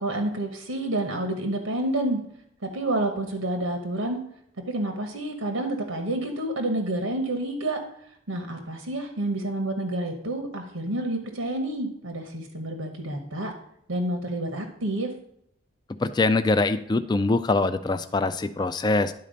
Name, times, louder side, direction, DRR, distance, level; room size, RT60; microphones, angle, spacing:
voice 1, 0.0-2.2 2.6-4.2 4.7-7.8 8.3-13.5 13.9-15.1, right 1 dB, 85° right, 4 dB, 1.1 m, -29 dB
voice 2, 16.0-19.1, left 3 dB, 20° left, 9 dB, 0.3 m, -23 dB
10.5 x 4.2 x 5.2 m, 0.73 s
head